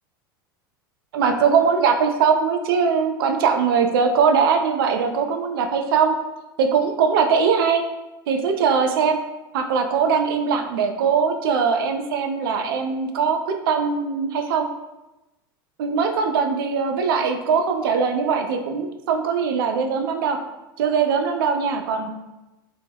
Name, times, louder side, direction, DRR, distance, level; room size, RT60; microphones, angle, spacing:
voice 1, 1.1-6.2 6.6-7.8 8.3-9.2 9.5-14.7 15.8-20.4 20.8-22.1, right 6 dB, 75° right, 5 dB, 0.4 m, -21 dB
2.2 x 2.1 x 3.4 m, 1.0 s
hypercardioid pair, 95°, 12 cm